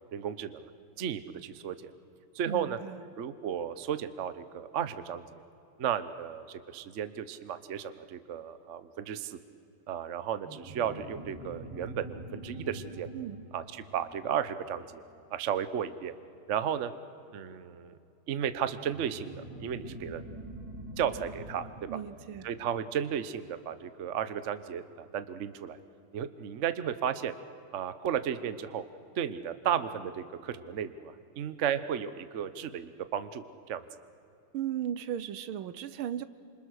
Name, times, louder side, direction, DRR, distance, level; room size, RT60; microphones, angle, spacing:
voice 1, 0.1-0.7 1.0-1.9 2.3-2.8 3.2-5.4 5.8-9.4 9.9-13.1 13.5-15.0 15.3-16.1 16.5-16.9 17.3-18.0 18.3-20.2 21.0-21.7 22.4-25.8 26.1-27.3 27.7-28.8 29.2-33.8, right 9 dB, 55° right, 12 dB, 0.8 m, -34 dB
voice 2, 2.4-3.0 13.1-13.4 21.9-22.5 34.5-36.2, right 10 dB, 75° right, 14 dB, 1.6 m, -36 dB
sound 1, 10.4-15.4 18.8-23.7, right 1 dB, 10° right, 1.8 m, -45 dB
28.0 x 26.5 x 6.5 m, 2.7 s
omnidirectional pair, 2.4 m